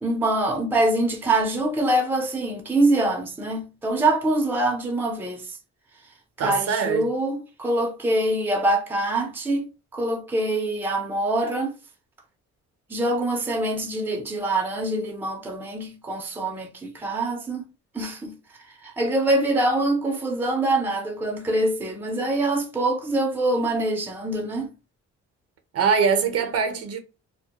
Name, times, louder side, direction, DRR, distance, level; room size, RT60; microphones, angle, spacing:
voice 1, 0.0-5.5 6.4-11.7 12.9-17.7 17.9-18.4 18.8-24.7, right 1 dB, 5° right, 0.5 m, -24 dB
voice 2, 6.4-7.1 25.7-27.0, right 6 dB, 55° right, 0.6 m, -23 dB
2.2 x 2.0 x 2.8 m
cardioid pair, 90°, 30 cm